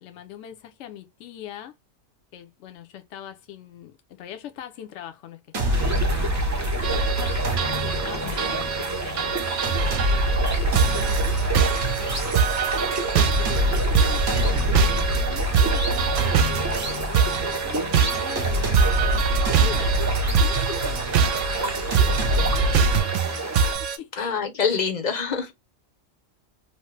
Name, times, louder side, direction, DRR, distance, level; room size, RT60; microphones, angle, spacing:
voice 1, 0.0-1.7 2.3-7.1 7.8-10.3 10.6-12.3 13.0-18.9 19.6-22.8 23.8-24.3, left 10 dB, 70° left, 0.9 m, -42 dB
sound 1, 5.5-23.0, right 1 dB, 45° right, 1.0 m, -26 dB
sound 2, 5.7-23.8, right 2 dB, 20° right, 0.4 m, -31 dB
sound 3, 6.8-24.0, right 7 dB, 75° right, 0.9 m, -25 dB
voice 2, 8.2-8.5 19.1-19.4 24.2-25.5, left 6 dB, 45° left, 0.7 m, -27 dB
3.0 x 2.1 x 3.1 m
omnidirectional pair, 1.3 m